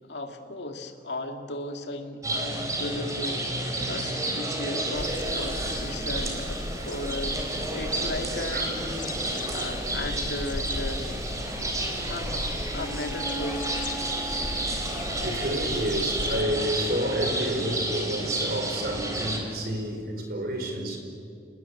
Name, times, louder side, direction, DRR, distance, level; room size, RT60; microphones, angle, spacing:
voice 1, 0.1-8.9 9.5-11.1 12.1-12.5 12.7-13.7, left 2 dB, 75° left, 5 dB, 2.3 m, -36 dB
sound 1, 2.2-19.4, right 1 dB, 20° right, 4.2 m, -31 dB
sound 2, 4.9-16.4, left 2 dB, 50° left, 0.9 m, -37 dB
voice 2, 8.5-8.9 15.2-21.0, equal, 60° right, 4 dB, 5.1 m, -30 dB
Wind instrument woodwind instrument, 12.7-19.4, right 1 dB, 5° left, 2.1 m, -42 dB
30.0 x 19.5 x 8.5 m, 2.3 s
head